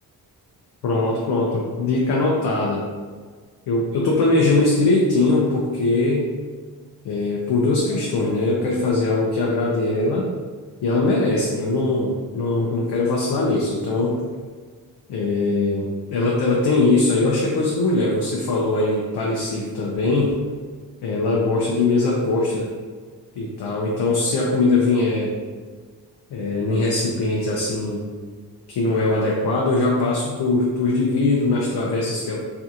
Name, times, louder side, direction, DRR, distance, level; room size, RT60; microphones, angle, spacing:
voice 1, 0.8-2.8 3.7-6.3 7.0-10.3 10.8-14.2 15.1-20.3 21.0-22.7 23.4-25.3 26.3-28.0 28.7-32.4, left 2 dB, 80° left, -3 dB, 0.6 m, -21 dB
3.4 x 2.8 x 2.4 m, 1.5 s
wide cardioid pair, 120°, 39 cm